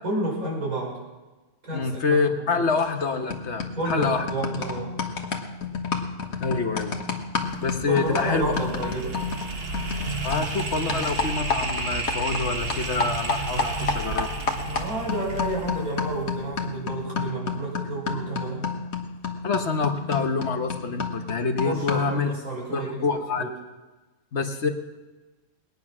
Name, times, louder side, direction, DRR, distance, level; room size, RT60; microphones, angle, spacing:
voice 1, 0.0-1.0 1.6-2.6 3.7-4.9 7.8-9.2 14.6-18.7 21.6-23.5, right 2 dB, 75° right, -4 dB, 5.7 m, -31 dB
voice 2, 1.7-4.2 6.4-7.0 7.6-8.5 10.2-14.3 19.4-22.3 22.7-23.4 24.3-24.7, left 4 dB, 55° left, 6 dB, 1.2 m, -26 dB
sound 1, 2.8-3.0 3.3-12.4 12.7-22.2, left 4 dB, 75° left, 1.7 m, -31 dB
sound 2, 7.4-16.6, right 3 dB, 45° right, 1.4 m, -32 dB
20.5 x 9.4 x 6.0 m, 1.2 s
omnidirectional pair, 1.5 m